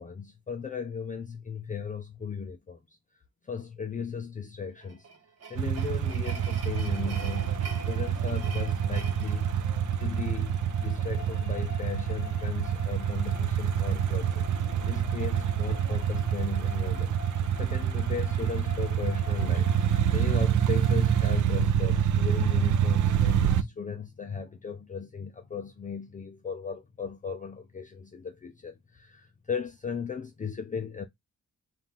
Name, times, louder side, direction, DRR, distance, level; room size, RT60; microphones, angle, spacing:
voice 1, 0.0-2.8 3.5-5.1 5.5-7.5 7.8-9.5 10.0-14.5 14.9-17.1 17.6-19.7 20.1-31.0, left 6 dB, 25° left, 0.4 m, -36 dB
sound 1, 4.8-10.3, right 5 dB, 55° right, 1.0 m, -45 dB
sound 2, 5.6-23.6, right 9 dB, 80° right, 0.5 m, -27 dB
sound 3, 6.3-21.3, left 8 dB, 65° left, 0.7 m, -46 dB
4.3 x 2.5 x 3.6 m
wide cardioid pair, 180°, 30 cm